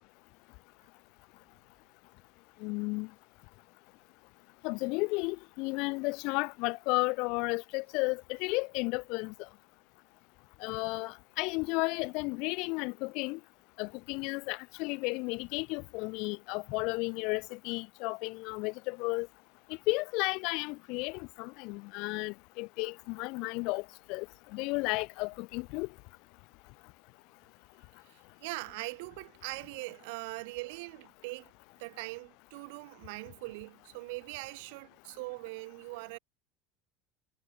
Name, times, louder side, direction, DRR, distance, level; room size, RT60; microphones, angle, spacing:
voice 1, 2.6-3.1 4.6-9.3 10.6-13.4 13.8-19.3 19.7-24.3 24.5-25.9, left 27 dB, 70° left, 1.1 m, -33 dB
voice 2, 28.0-31.5 31.8-36.2, right 27 dB, 75° right, 1.3 m, -41 dB
supercardioid pair, 95°, 0 cm